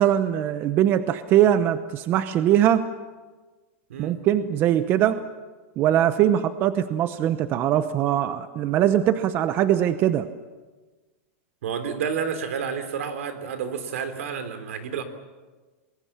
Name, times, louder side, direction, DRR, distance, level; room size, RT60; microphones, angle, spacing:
voice 1, 0.0-2.9 4.0-5.2 5.8-10.3, right 11 dB, 30° right, 12 dB, 0.8 m, -21 dB
voice 2, 11.6-15.0, right 7 dB, 75° right, 10 dB, 3.5 m, -30 dB
27.5 x 21.5 x 7.3 m, 1.3 s
supercardioid pair, 160°, 8 cm